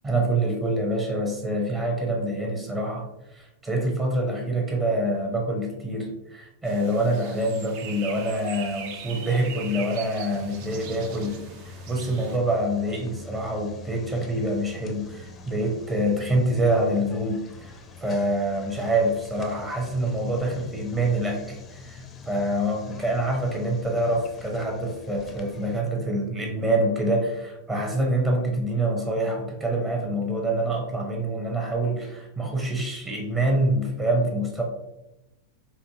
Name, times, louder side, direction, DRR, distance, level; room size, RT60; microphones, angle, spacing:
voice 1, 0.0-17.7 18.0-34.6, right 1 dB, 15° right, 0 dB, 0.8 m, -26 dB
sound 1, 6.6-12.4, right 7 dB, 45° right, 0.5 m, -41 dB
sound 2, 10.3-25.8, left 3 dB, 25° left, 0.5 m, -44 dB
4.0 x 2.7 x 2.7 m, 0.91 s
figure-of-eight pair, 90°, 0 cm